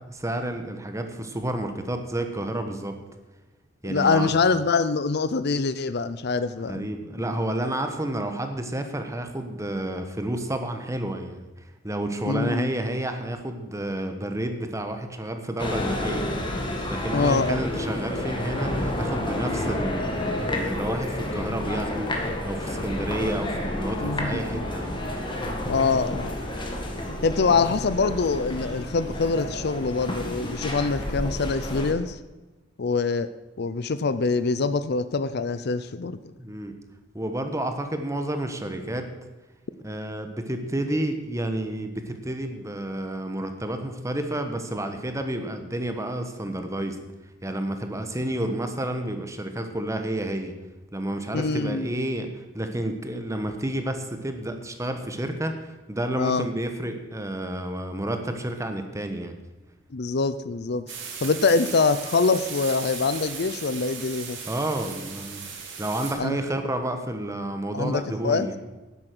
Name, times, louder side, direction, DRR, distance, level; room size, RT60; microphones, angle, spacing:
voice 1, 0.1-3.0 3.8-4.3 6.6-11.5 11.8-16.3 16.9-24.9 36.4-36.7 37.1-39.1 39.8-47.0 47.4-50.5 50.9-59.4 64.4-65.4 65.8-68.6, right 1 dB, 15° right, 6 dB, 1.2 m, -30 dB
voice 2, 3.8-6.9 12.2-12.7 17.1-17.7 24.0-24.6 25.7-26.3 27.1-32.2 32.8-33.3 33.6-36.2 51.3-51.9 56.2-56.5 59.9-60.9 61.2-64.4 66.2-66.4 67.7-68.5, left 4 dB, 55° left, 13 dB, 0.6 m, -24 dB
sound 1, 15.6-30.4, equal, 85° left, 4.9 m, -44 dB
sound 2, 15.6-31.9, left 1 dB, 25° left, 1.9 m, -30 dB
sound 3, 60.9-66.1, right 6 dB, 65° right, 2.4 m, -37 dB
12.0 x 9.7 x 6.2 m, 1.1 s
head